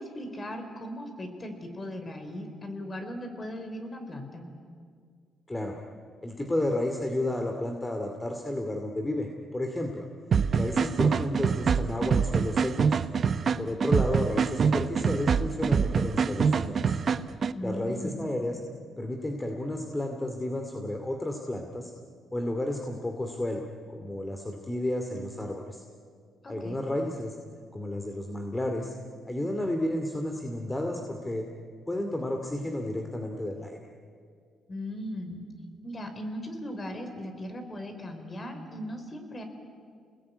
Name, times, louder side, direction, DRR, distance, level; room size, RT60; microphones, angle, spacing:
voice 1, 0.0-4.5 17.5-18.3 26.4-26.8 34.7-35.4 35.8-39.4, equal, 30° left, 6 dB, 4.7 m, -38 dB
voice 2, 6.2-10.1 10.5-13.0 13.6-17.0 17.6-18.6 19.0-21.9 22.3-25.8 26.5-27.3 27.7-28.9 29.2-31.5 31.9-33.8, left 1 dB, 15° left, 3 dB, 2.5 m, -32 dB
sound 1, 10.3-17.5, right 6 dB, 50° right, 1.0 m, -25 dB
29.0 x 20.5 x 9.7 m, 2.1 s
cardioid pair, 90°, 0 cm